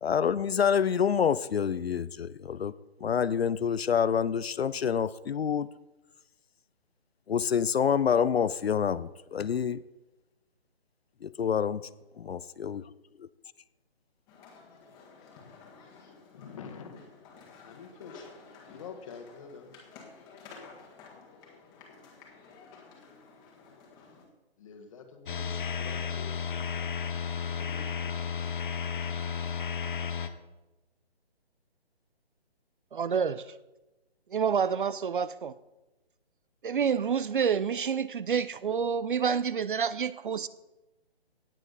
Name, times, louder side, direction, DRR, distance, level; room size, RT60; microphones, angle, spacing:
voice 1, 0.0-2.7 3.0-5.7 7.3-9.8 11.2-11.8 12.2-12.8, left 7 dB, 70° left, 16 dB, 0.5 m, -27 dB
sound 1, 14.3-24.3, left 5 dB, 10° left, 1.6 m, -52 dB
voice 2, 16.3-17.0 17.6-18.3 18.7-19.8 24.6-26.8 27.5-28.7, left 5 dB, 30° left, 6 dB, 1.5 m, -47 dB
sound 2, 25.3-30.3, left 7 dB, 50° left, 1.0 m, -33 dB
voice 3, 32.9-33.4 34.3-35.5 36.6-40.5, right 7 dB, 55° right, 17 dB, 0.5 m, -28 dB
17.5 x 7.6 x 4.0 m, 1.1 s
figure-of-eight pair, 150°, 32 cm